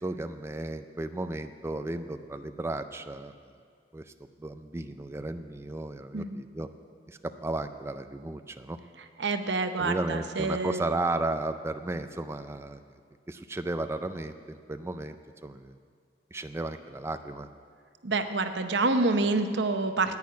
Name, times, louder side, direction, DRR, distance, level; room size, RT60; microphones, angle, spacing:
voice 1, 0.0-3.3 3.9-4.1 4.4-6.7 7.1-8.8 9.8-12.8 13.3-15.2 15.4-15.8 16.3-17.5, right 2 dB, 15° right, 8 dB, 0.4 m, -34 dB
voice 2, 9.2-10.8 18.0-20.2, right 3 dB, 85° right, 8 dB, 0.9 m, -27 dB
10.5 x 9.3 x 9.4 m, 2.1 s
head